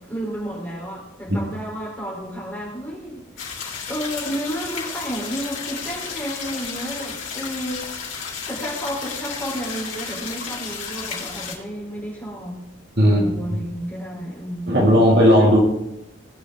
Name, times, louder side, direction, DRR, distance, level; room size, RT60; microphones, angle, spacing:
voice 1, 0.0-3.6 3.9-7.8 8.5-12.6 13.0-14.9, equal, 10° left, -5 dB, 3.8 m, -31 dB
sound 1, 3.4-11.6, left 6 dB, 85° left, 3.4 m, -33 dB
voice 2, 13.0-13.3 14.7-15.6, equal, 55° right, -2 dB, 2.5 m, -15 dB
18.5 x 7.0 x 3.8 m, 0.87 s
head